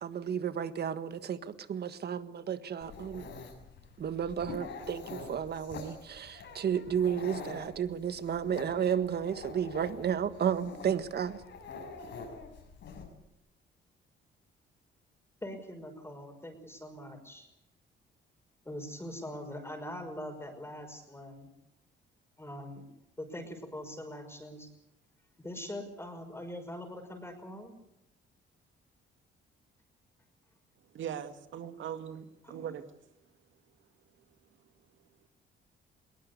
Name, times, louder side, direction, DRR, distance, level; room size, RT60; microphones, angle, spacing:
voice 1, 0.0-3.2 4.0-11.4, right 8 dB, 55° right, 1.6 m, -32 dB
Dog, 2.8-13.0, left 4 dB, 70° left, 7.0 m, -46 dB
voice 2, 15.4-17.5 18.7-21.5 22.4-22.8 23.2-24.7 25.4-27.7 32.4-32.6, left 1 dB, 10° left, 5.8 m, -42 dB
voice 3, 30.9-32.8, right 9 dB, 75° right, 2.1 m, -40 dB
22.0 x 19.5 x 8.3 m
cardioid pair, 90°, 20 cm